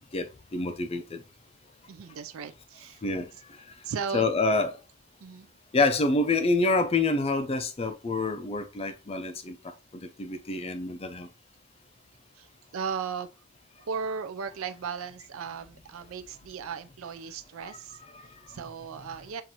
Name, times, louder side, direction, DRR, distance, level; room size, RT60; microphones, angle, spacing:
voice 1, 0.5-1.2 3.0-3.2 4.1-4.8 5.7-9.6 10.2-11.3, left 3 dB, 25° left, 0.4 m, -26 dB
voice 2, 1.9-3.0 3.8-4.3 5.2-5.5 12.4-13.3 13.8-19.4, right 6 dB, 65° right, 0.4 m, -36 dB
7.5 x 2.6 x 2.8 m
head